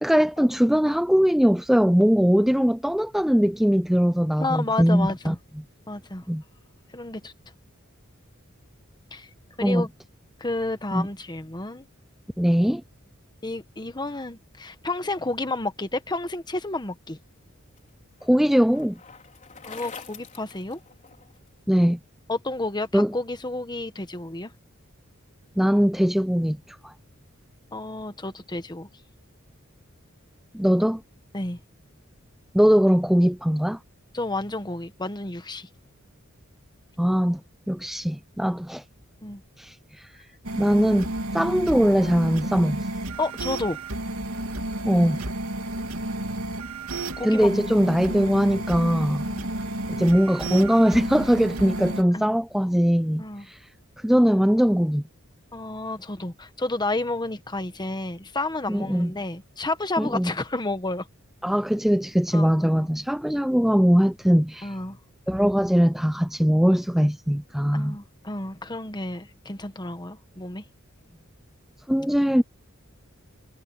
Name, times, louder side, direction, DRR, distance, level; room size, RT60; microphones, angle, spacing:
voice 1, 0.0-5.3 6.3-6.4 9.6-9.9 10.9-11.1 12.4-12.8 18.2-19.0 21.7-22.0 22.9-23.1 25.6-26.9 30.5-31.0 32.5-33.8 37.0-37.4 37.7-38.8 39.6-40.1 40.6-42.9 44.8-45.2 47.2-49.3 49.9-53.7 54.0-55.0 58.7-59.1 60.0-60.3 61.4-64.7 65.3-68.0 71.9-72.4, equal, ahead, 0.3 m, -21 dB
voice 2, 4.4-5.4 5.9-6.3 6.9-7.3 9.1-9.3 9.6-9.9 10.4-11.8 13.4-17.2 19.6-20.8 22.3-24.5 27.7-28.9 31.3-31.6 34.1-35.7 39.2-39.4 43.2-43.8 47.2-47.7 48.0-48.1 49.3-49.5 52.1-52.4 53.2-53.5 55.5-61.1 62.3-62.9 64.6-65.0 67.7-70.6, left 2 dB, 20° left, 1.3 m, -31 dB
Bicycle, 17.1-21.5, left 5 dB, 35° left, 4.4 m, -46 dB
sound 1, 40.4-52.0, right 2 dB, 90° right, 2.6 m, -31 dB
head